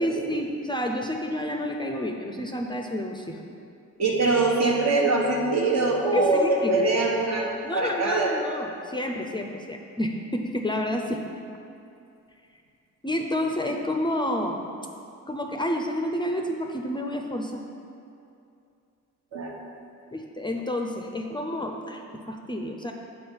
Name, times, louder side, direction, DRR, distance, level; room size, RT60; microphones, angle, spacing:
voice 1, 0.0-3.4 6.1-6.8 7.6-11.2 13.0-14.6 15.3-17.6 20.1-22.9, left 1 dB, 15° left, 3 dB, 0.5 m, -29 dB
voice 2, 4.0-8.4 19.3-19.5, right 2 dB, 60° right, -1 dB, 1.2 m, -23 dB
6.9 x 4.0 x 5.6 m, 2.5 s
cardioid pair, 90°, 30 cm